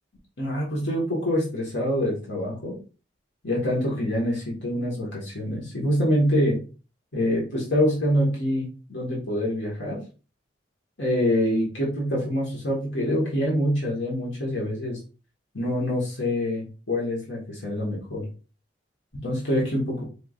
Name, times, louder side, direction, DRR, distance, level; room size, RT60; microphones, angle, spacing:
voice 1, 0.4-2.8 3.4-6.6 7.1-10.0 11.0-15.0 15.5-18.3 19.2-20.0, equal, 85° left, -4 dB, 1.6 m, -25 dB
4.8 x 3.4 x 2.5 m, 0.34 s
head